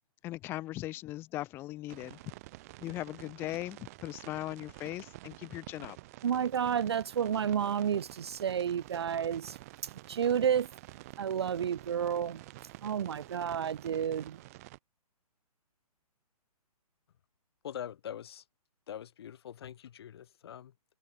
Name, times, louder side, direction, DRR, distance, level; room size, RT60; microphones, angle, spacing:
voice 1, 0.2-2.2 2.8-6.0, left 16 dB, 10° left, 1.2 m, -39 dB
sound 1, 1.9-14.8, right 19 dB, 25° right, 5.0 m, -49 dB
voice 2, 6.2-9.6 10.1-10.7 11.2-12.4 12.8-14.4, right 8 dB, 45° right, 0.7 m, -30 dB
voice 3, 17.6-18.4 18.9-21.0, left 10 dB, 40° left, 5.5 m, -44 dB
hypercardioid pair, 170°, 20 cm